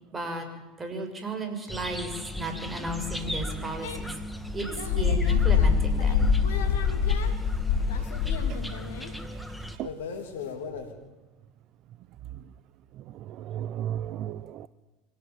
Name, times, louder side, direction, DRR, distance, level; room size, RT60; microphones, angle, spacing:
voice 1, 0.1-0.5 0.8-4.1 4.5-6.2, right 2 dB, 20° right, 6.5 m, -34 dB
sound 1, 1.7-9.8, equal, ahead, 2.3 m, -37 dB
sound 2, 3.8-9.1 9.8-10.8, left 6 dB, 75° left, 3.4 m, -25 dB
voice 2, 13.0-14.7, right 11 dB, 50° right, 0.8 m, -35 dB
25.5 x 17.5 x 7.4 m
hypercardioid pair, 80°, 0 cm